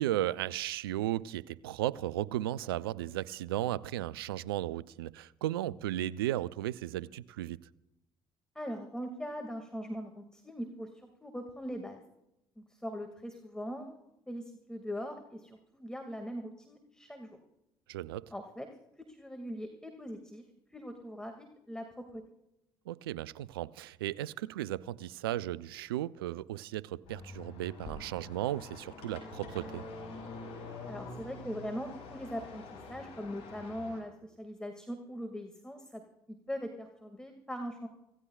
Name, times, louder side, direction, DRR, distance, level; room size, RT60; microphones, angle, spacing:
voice 1, 0.0-7.6 17.9-18.3 22.9-29.8, right 13 dB, 85° right, 0.4 m, -35 dB
voice 2, 8.6-12.0 12.6-14.0 14.3-17.4 18.3-18.7 19.1-20.4 20.7-21.9 22.1-22.2 30.9-32.6 32.9-36.0 36.3-37.9, equal, 5° left, 2.1 m, -41 dB
sound 1, 27.0-34.0, left 3 dB, 65° left, 6.0 m, -46 dB
25.5 x 17.0 x 2.4 m
hypercardioid pair, 55°, 12 cm